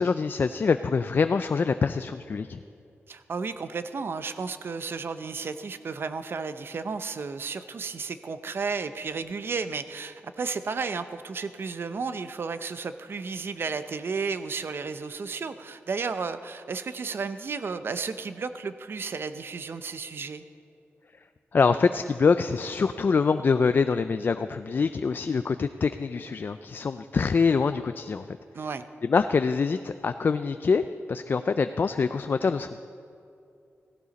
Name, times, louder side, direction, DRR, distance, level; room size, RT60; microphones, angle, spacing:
voice 1, 0.0-2.6 21.5-28.3 29.0-30.8 31.1-32.9, left 5 dB, 45° left, 10 dB, 0.3 m, -25 dB
voice 2, 3.1-20.4 28.5-28.8, right 5 dB, 55° right, 11 dB, 0.6 m, -33 dB
16.5 x 16.0 x 4.1 m, 2.6 s
wide cardioid pair, 135°, 5 cm